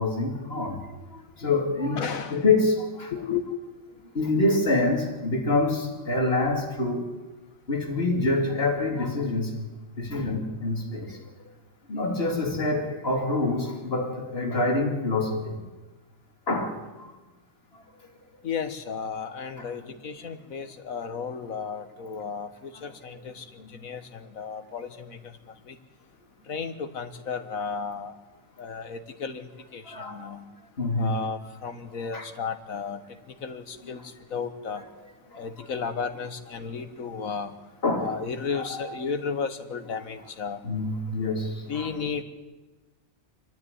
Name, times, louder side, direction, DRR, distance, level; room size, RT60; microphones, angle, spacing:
voice 1, 0.0-3.1 4.1-7.1 7.7-9.7 10.0-11.2 11.9-15.6 16.5-17.1 19.6-19.7 22.7-22.9 23.6-23.7 29.8-30.4 30.8-31.2 32.1-32.3 33.8-33.9 35.3-35.4 36.6-36.7 37.8-38.2 38.5-38.8 40.6-42.0, left 2 dB, 45° left, 3.0 m, -26 dB
voice 2, 2.0-2.4 3.1-3.4 18.4-25.4 25.7-25.8 26.5-28.1 28.6-30.5 31.0-34.8 35.4-37.5 38.0-40.6 41.7-42.2, left 6 dB, 90° left, 1.8 m, -34 dB
27.5 x 10.5 x 9.8 m
omnidirectional pair, 1.4 m